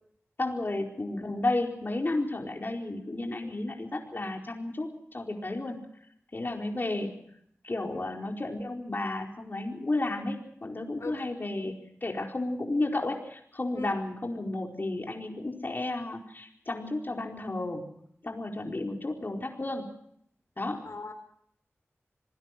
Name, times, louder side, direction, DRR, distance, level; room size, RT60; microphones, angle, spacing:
voice 1, 0.4-5.8 6.3-7.1 7.6-10.4 10.6-17.8 18.2-19.8 20.6-20.8, left 2 dB, 45° left, 1 dB, 4.6 m, -32 dB
voice 2, 3.4-3.5 6.4-6.6 7.9-8.0 11.0-11.1 13.7-13.9 20.8-21.1, left 3 dB, 80° left, 6 dB, 4.0 m, -40 dB
27.0 x 20.0 x 6.1 m, 0.69 s
wide cardioid pair, 80°, 5 cm